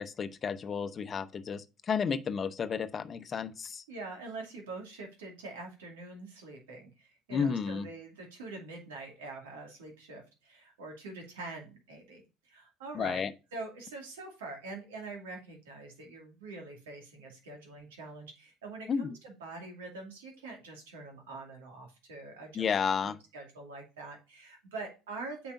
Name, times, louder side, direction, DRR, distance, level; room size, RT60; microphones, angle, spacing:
voice 1, 0.0-3.8 7.3-7.9 12.9-13.3 18.9-19.1 22.5-23.2, left 6 dB, 40° left, 0.7 m, -32 dB
voice 2, 3.9-22.6 23.0-25.5, right 3 dB, 85° right, 2.3 m, -44 dB
8.8 x 4.7 x 2.6 m
hypercardioid pair, 75°, 0 cm